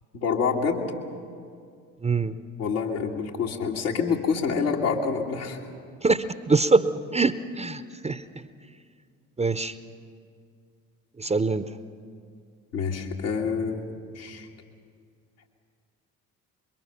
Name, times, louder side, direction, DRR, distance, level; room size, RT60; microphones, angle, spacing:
voice 1, 0.1-0.9 2.6-5.6 12.7-14.5, left 5 dB, 75° left, -1 dB, 2.0 m, -27 dB
voice 2, 2.0-2.4 6.0-8.5 9.4-9.7 11.2-11.7, right 3 dB, 15° right, 13 dB, 0.7 m, -24 dB
25.5 x 22.5 x 5.7 m, 2.3 s
figure-of-eight pair, 45°, 44 cm